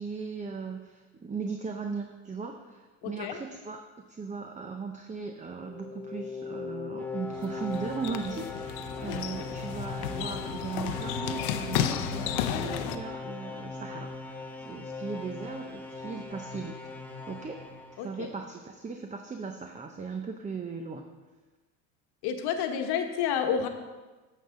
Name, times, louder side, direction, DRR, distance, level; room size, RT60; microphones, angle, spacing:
voice 1, 0.0-3.8 4.1-16.8 17.3-17.6 18.0-21.1, right 5 dB, 15° right, 5 dB, 0.7 m, -38 dB
voice 2, 3.0-3.4 9.1-9.2 18.0-18.3 22.2-23.7, left 8 dB, 60° left, 6 dB, 1.2 m, -30 dB
sound 1, 5.5-18.5, left 3 dB, 5° left, 1.1 m, -39 dB
sound 2, 7.3-13.0, left 10 dB, 75° left, 0.7 m, -33 dB
9.1 x 7.4 x 3.8 m, 1.2 s
hypercardioid pair, 80°, 44 cm